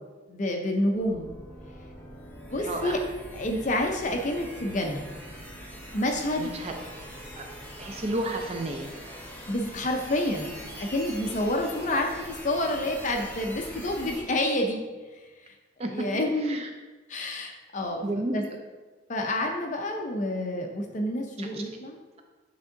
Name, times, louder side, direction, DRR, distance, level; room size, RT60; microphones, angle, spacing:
voice 1, 0.3-1.3 2.5-3.0 3.3-5.1 5.9-6.5 9.5-14.8 15.1-15.5 15.9-16.6 17.1-18.0 18.3-18.4 19.1-22.0, left 1 dB, 40° left, 3 dB, 0.5 m, -28 dB
sound 1, 0.9-14.2, equal, 10° left, 1.0 m, -43 dB
voice 2, 2.6-3.0 6.4-6.7 7.3-7.5 7.8-8.9 15.8-15.9 16.4-16.7 18.0-18.5 21.4-21.6, right 1 dB, 30° right, 3 dB, 0.4 m, -32 dB
8.7 x 3.5 x 3.8 m, 1.3 s
head